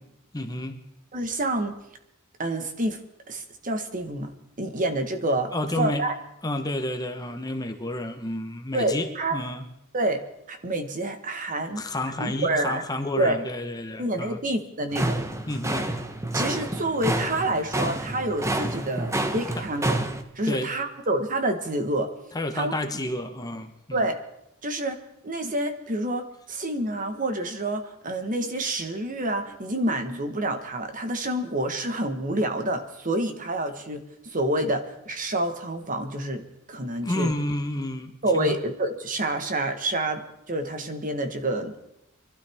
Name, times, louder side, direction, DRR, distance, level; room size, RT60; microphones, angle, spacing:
voice 1, 0.3-0.7 5.5-6.0 6.4-9.6 11.8-14.4 15.5-15.9 20.5-20.7 22.3-24.1 37.0-38.5, left 1 dB, 20° left, 5 dB, 1.0 m, -30 dB
voice 2, 1.1-1.7 2.4-4.3 4.6-6.2 8.7-9.4 9.9-10.2 10.5-11.9 12.2-12.8 13.2-13.4 14.0-15.2 16.3-20.0 20.3-22.1 22.5-22.7 23.9-24.2 24.6-25.0 25.2-37.3 38.2-41.7, right 1 dB, 40° right, 7 dB, 1.3 m, -28 dB
sound 1, 14.9-20.2, right 1 dB, 15° right, 0.9 m, -28 dB
24.5 x 12.5 x 3.5 m, 0.81 s
head